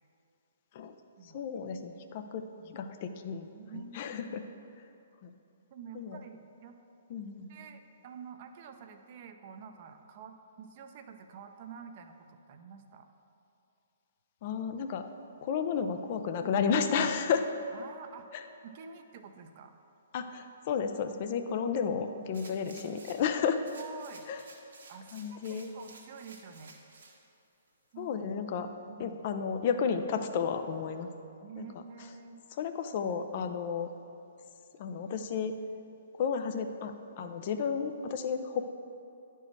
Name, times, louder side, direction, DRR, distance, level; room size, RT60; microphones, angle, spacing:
voice 1, 1.2-3.5 3.9-4.4 5.2-5.3 5.9-6.2 7.1-7.5 14.4-15.1 15.4-17.4 18.3-18.4 20.1-23.6 24.3-24.4 25.1-25.7 28.0-28.7 29.0-31.1 31.6-31.7 32.6-33.9 34.8-35.5 36.1-38.7, left 6 dB, 45° left, 8 dB, 0.6 m, -32 dB
voice 2, 2.4-2.8 3.5-4.0 5.7-6.8 7.5-13.1 17.7-18.3 18.6-19.7 23.7-24.3 24.9-26.8 27.9-28.1 28.9-29.2 31.4-32.4, right 7 dB, 45° right, 6 dB, 0.6 m, -48 dB
sound 1, 22.3-23.3 23.6-27.2 27.7-27.8, right 3 dB, 70° right, 1.3 m, -53 dB
10.5 x 4.5 x 4.6 m, 2.7 s
figure-of-eight pair, 130°, 0 cm